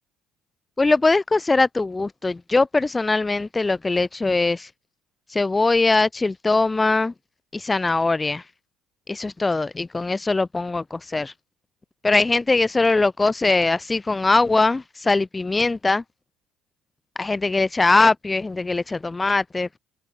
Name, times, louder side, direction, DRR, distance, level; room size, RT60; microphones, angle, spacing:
voice 1, 0.8-4.7 5.3-7.1 7.5-8.4 9.1-11.3 12.0-16.0 17.2-19.8, left 3 dB, 20° left, 0.6 m, -21 dB
figure-of-eight pair, 55°, 0 cm